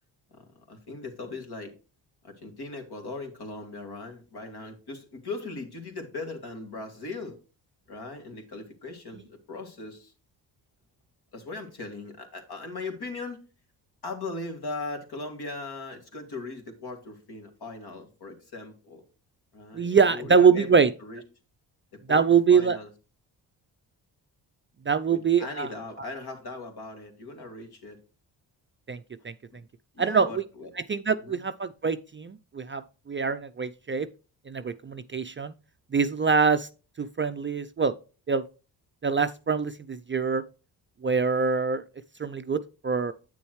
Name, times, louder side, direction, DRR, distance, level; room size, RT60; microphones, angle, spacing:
voice 1, 0.3-1.7 2.2-7.4 7.9-10.1 11.3-13.4 14.0-19.0 19.5-21.2 22.1-22.2 22.5-22.9 25.1-28.0 29.5-29.6 29.9-30.7 31.2-31.4, left 3 dB, 55° left, 2.4 m, -39 dB
voice 2, 19.7-20.9 22.1-22.8 24.9-25.7 28.9-29.3 30.0-30.4 30.9-34.1 34.5-35.5 35.9-36.7 37.0-37.9 38.3-38.4 39.0-40.4 41.0-41.8 42.2-43.1, right 5 dB, 25° right, 0.5 m, -24 dB
8.5 x 6.9 x 3.1 m
supercardioid pair, 55°, 45 cm